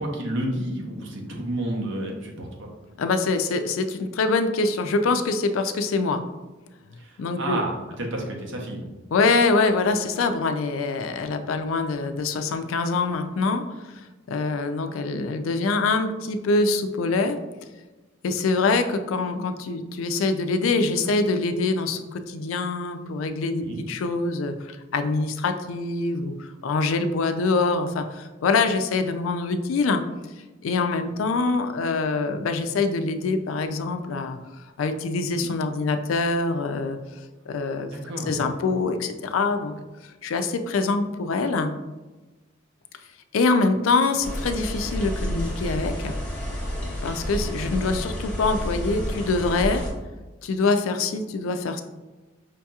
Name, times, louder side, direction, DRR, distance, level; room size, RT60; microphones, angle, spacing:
voice 1, 0.0-2.7 7.0-8.9 23.6-23.8 37.9-38.4, right 1 dB, 70° right, 0 dB, 0.8 m, -30 dB
voice 2, 3.0-6.2 7.2-7.6 9.1-17.4 18.2-30.0 30.6-34.4 34.8-37.9 38.2-39.7 40.0-41.7 43.3-46.2 47.0-49.8 50.4-51.8, left 3 dB, 85° left, 8 dB, 0.4 m, -24 dB
sound 1, 44.2-49.9, equal, 5° left, 0.7 m, -30 dB
5.1 x 2.8 x 2.3 m, 1.2 s
head